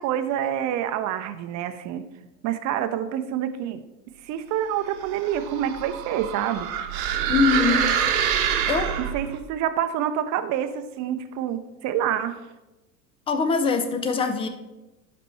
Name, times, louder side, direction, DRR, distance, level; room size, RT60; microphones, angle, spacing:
voice 1, 0.0-2.0 2.4-3.8 4.2-6.7 9.0-12.5, right 10 dB, 35° right, 10 dB, 0.6 m, -27 dB
sound 1, 4.9-9.4, right 9 dB, 60° right, 1.0 m, -26 dB
voice 2, 7.3-7.9 8.7-8.9 13.3-14.5, left 5 dB, 15° left, 7 dB, 0.4 m, -22 dB
11.5 x 4.2 x 3.1 m, 1.0 s
hypercardioid pair, 90°, 49 cm